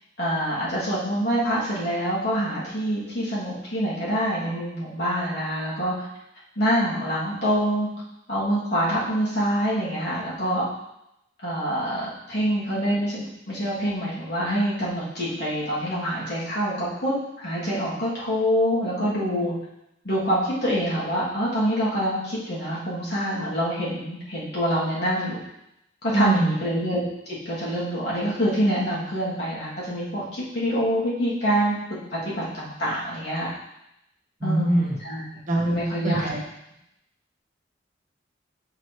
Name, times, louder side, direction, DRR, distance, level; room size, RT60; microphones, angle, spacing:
voice 1, 0.2-6.1 6.6-7.9 8.3-10.6 11.4-19.5 20.0-25.4 26.0-27.0 27.4-31.7 32.1-33.5 34.4-35.2 35.6-36.3, equal, 60° left, -8 dB, 2.8 m, -26 dB
voice 2, 26.1-26.5 34.4-35.0 35.5-35.8 36.0-36.4, right 2 dB, 40° right, -2 dB, 1.4 m, -22 dB
6.8 x 6.5 x 3.3 m, 0.85 s
head